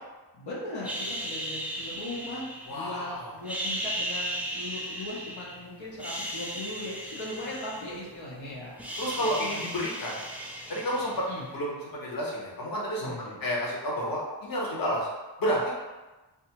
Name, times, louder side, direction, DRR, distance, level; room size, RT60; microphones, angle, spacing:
voice 1, 0.3-9.6 11.3-11.5 13.0-13.4, left 1 dB, 85° left, -6 dB, 0.8 m, -39 dB
sound 1, 0.8-3.0 3.4-5.6 5.9-8.3 8.6-11.5, right 1 dB, 5° right, 0.4 m, -36 dB
voice 2, 2.7-3.3 9.0-10.2 10.7-11.1 11.5-13.1 13.4-15.1 15.4-15.7, equal, 50° left, -4 dB, 0.8 m, -30 dB
2.7 x 2.3 x 2.9 m, 1.1 s
wide cardioid pair, 55°, 46 cm